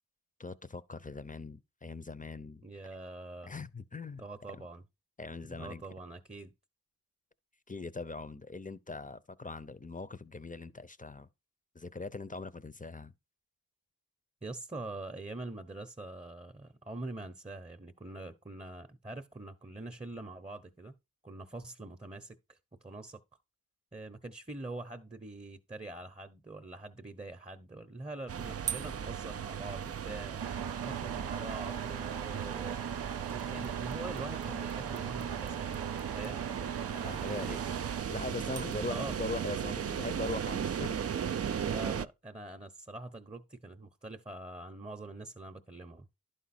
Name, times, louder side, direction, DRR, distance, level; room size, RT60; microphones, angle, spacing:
voice 1, 0.4-2.6 3.4-4.2 5.2-5.8 7.7-11.3 11.7-13.1 36.9-37.7 38.1-41.0, left 3 dB, 20° left, 0.7 m, -41 dB
voice 2, 2.6-3.5 4.2-4.8 5.5-6.5 14.4-20.9 21.2-23.2 23.9-30.4 30.8-32.8 33.3-35.8 36.1-36.4 37.0-37.6 38.9-39.2 41.6-46.1, right 2 dB, 15° right, 0.8 m, -44 dB
sound 1, 28.3-42.1, right 8 dB, 40° right, 0.4 m, -36 dB
Engine, 30.4-38.0, right 8 dB, 80° right, 0.7 m, -40 dB
11.0 x 5.1 x 4.2 m
cardioid pair, 60°, 39 cm